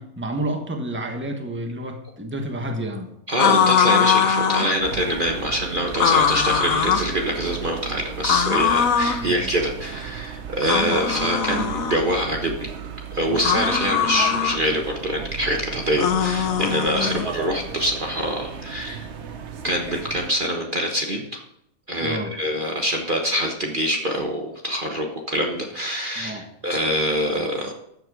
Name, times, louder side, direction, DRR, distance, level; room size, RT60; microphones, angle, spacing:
voice 1, 0.0-3.1 9.2-9.5 11.5-11.7 13.3-13.5 17.0-17.3 22.0-22.3 26.2-26.5, right 1 dB, 10° right, 4 dB, 1.3 m, -30 dB
voice 2, 3.3-12.7 13.1-19.1 19.6-21.4 21.9-27.7, equal, 40° right, 1 dB, 1.3 m, -25 dB
sound 1, 3.4-4.8 5.9-7.1 8.2-9.2 10.6-12.0 13.4-14.6 16.0-17.3, left 8 dB, 70° left, 1.3 m, -21 dB
sound 2, 4.8-20.3, right 7 dB, 55° right, 1.1 m, -36 dB
13.5 x 7.8 x 5.0 m, 0.75 s
omnidirectional pair, 1.5 m